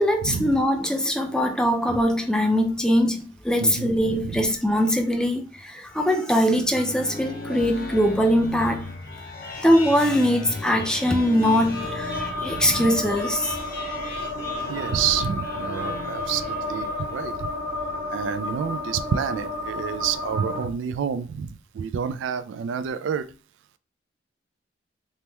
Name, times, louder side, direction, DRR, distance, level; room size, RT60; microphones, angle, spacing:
voice 1, 0.0-8.9 9.6-13.6, equal, 5° left, 0.4 m, -22 dB
voice 2, 3.6-4.4 12.5-12.9 14.7-17.5 18.1-23.2, right 7 dB, 90° right, 0.3 m, -29 dB
sound 1, 6.5-17.3, left 2 dB, 50° left, 0.8 m, -37 dB
sound 2, 11.7-20.6, left 2 dB, 50° right, 1.1 m, -31 dB
3.3 x 2.1 x 2.8 m
head